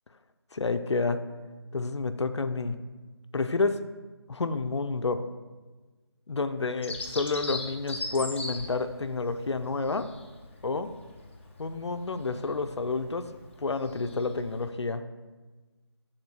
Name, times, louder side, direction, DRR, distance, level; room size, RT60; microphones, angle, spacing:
voice 1, 0.5-1.2 1.7-2.8 3.3-3.8 4.3-5.2 6.3-10.1 10.6-10.9 11.6-13.3 13.6-15.0, left 3 dB, 85° left, 10 dB, 0.5 m, -29 dB
Bird vocalization bird call bird song, 6.8-14.7, left 2 dB, 25° left, 0.6 m, -40 dB
6.9 x 3.7 x 3.9 m, 1.3 s
figure-of-eight pair, 165°, 14 cm